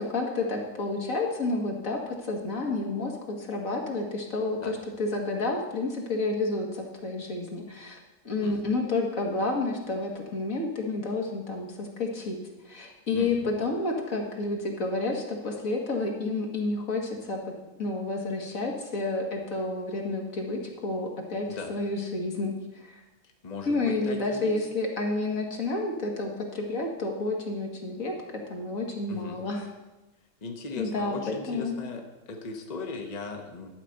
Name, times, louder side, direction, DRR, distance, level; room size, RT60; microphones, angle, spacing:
voice 1, 0.0-8.0 8.2-12.4 12.7-17.5 17.8-23.0 23.7-28.1 28.5-29.7 30.8-31.8, left 2 dB, 70° left, 0 dB, 2.1 m, -30 dB
voice 2, 13.1-13.6 21.5-21.7 23.4-24.6 29.1-29.4 30.4-32.0 32.3-33.7, left 3 dB, 30° left, 3 dB, 1.1 m, -38 dB
12.0 x 5.0 x 7.9 m, 1.1 s
omnidirectional pair, 1.5 m